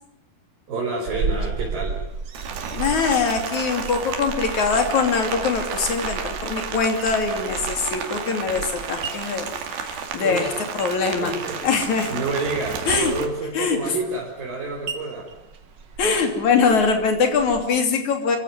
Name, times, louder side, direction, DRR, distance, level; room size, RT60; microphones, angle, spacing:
voice 1, 0.7-2.0 10.2-10.5 11.2-15.3, right 3 dB, 70° right, -3 dB, 6.1 m, -29 dB
sound 1, 1.1-17.6, right 4 dB, 50° right, 1.4 m, -36 dB
Rain, 2.3-13.3, right 6 dB, 85° right, 4.2 m, -32 dB
voice 2, 2.7-11.3 11.6-12.1 12.9-13.1 13.5-13.9 16.0-18.4, left 5 dB, 55° left, 5 dB, 4.2 m, -22 dB
28.5 x 16.0 x 9.3 m, 0.85 s
omnidirectional pair, 4.2 m